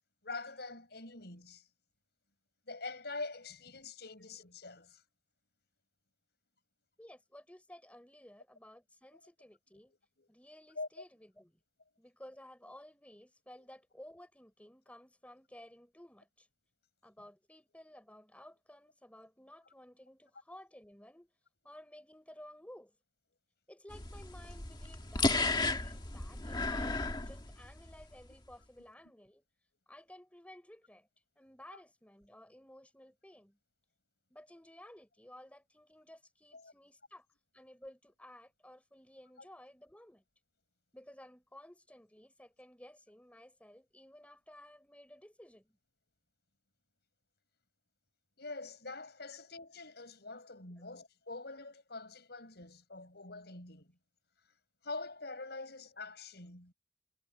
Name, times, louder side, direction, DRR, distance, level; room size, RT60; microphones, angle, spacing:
voice 1, 0.2-1.6 2.7-5.0 9.9-10.3 10.8-11.0 36.5-36.7 48.4-53.9 54.8-56.7, left 3 dB, 60° left, 7.5 m, -45 dB
voice 2, 7.0-9.9 10.3-11.6 12.0-16.5 17.0-21.3 21.6-23.0 23.7-29.4 29.9-31.1 31.4-33.6 34.3-37.3 37.5-40.2 40.9-45.8 50.8-50.9, left 1 dB, 5° left, 4.3 m, -55 dB
sound 1, 23.9-28.0, left 3 dB, 25° left, 1.9 m, -34 dB
head